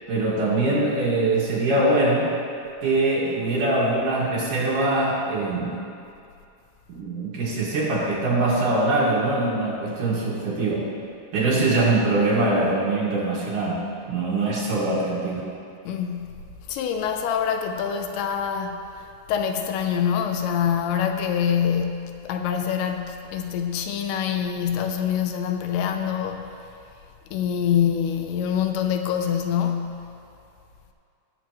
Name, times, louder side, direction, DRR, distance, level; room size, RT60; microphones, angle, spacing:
voice 1, 0.1-2.3 2.8-5.8 6.9-10.9 11.3-13.8 14.0-15.4, right 2 dB, 60° right, -6 dB, 3.1 m, -23 dB
voice 2, 15.9-16.4 16.7-18.9 19.3-26.6 27.3-30.1, left 8 dB, 80° left, 5 dB, 2.6 m, -25 dB
19.0 x 7.2 x 3.0 m, 2.5 s
omnidirectional pair, 4.6 m